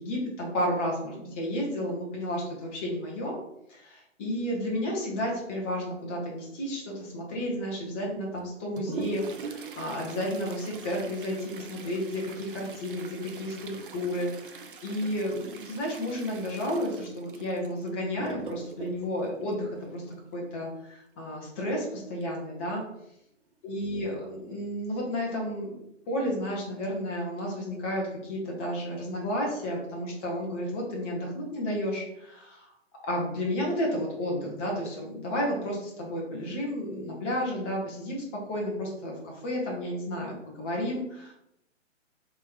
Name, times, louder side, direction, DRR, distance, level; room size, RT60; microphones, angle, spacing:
voice 1, 0.0-3.4 3.7-20.0 20.3-22.8 23.6-25.7 26.1-32.7 33.0-41.3, equal, 10° left, -2 dB, 0.5 m, -32 dB
Toilet flush, 8.4-20.3 22.2-22.3 22.6-22.7 23.5-23.6 24.3-24.5 25.0-25.1, right 5 dB, 45° right, 0.5 m, -43 dB
3.6 x 2.8 x 4.6 m, 0.79 s
figure-of-eight pair, 135°, 38 cm